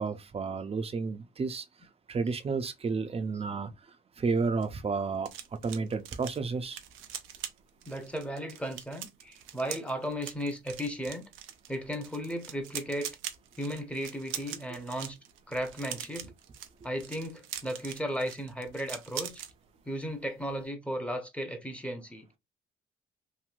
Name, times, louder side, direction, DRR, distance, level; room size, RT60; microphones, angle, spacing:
voice 1, 0.0-1.6 2.1-3.7 4.2-5.3 5.6-6.8, right 4 dB, 30° right, 0.5 m, -31 dB
sound 1, 4.3-19.5 19.8-20.1 20.4-20.6, right 10 dB, 90° right, 0.5 m, -43 dB
voice 2, 7.8-11.2 11.7-13.2 13.6-15.2 15.5-16.3 16.8-19.4 19.9-22.3, equal, 5° left, 0.8 m, -35 dB
3.1 x 2.6 x 2.4 m
cardioid pair, 90°, 20 cm